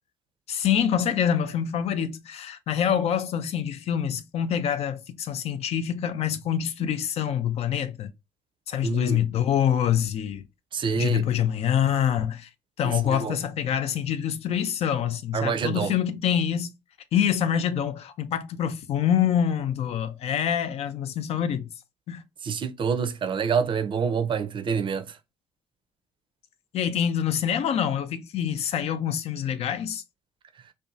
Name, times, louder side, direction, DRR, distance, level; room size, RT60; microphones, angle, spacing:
voice 1, 0.5-8.1 8.7-10.4 11.0-12.5 12.8-16.7 17.1-21.7 22.1-22.2 26.7-30.0, left 9 dB, 50° left, 0.4 m, -26 dB
voice 2, 8.8-9.2 10.7-11.3 12.8-13.4 15.3-15.9 22.4-25.1, right 6 dB, 40° right, 0.5 m, -27 dB
2.6 x 2.2 x 2.5 m
figure-of-eight pair, 45°, 13 cm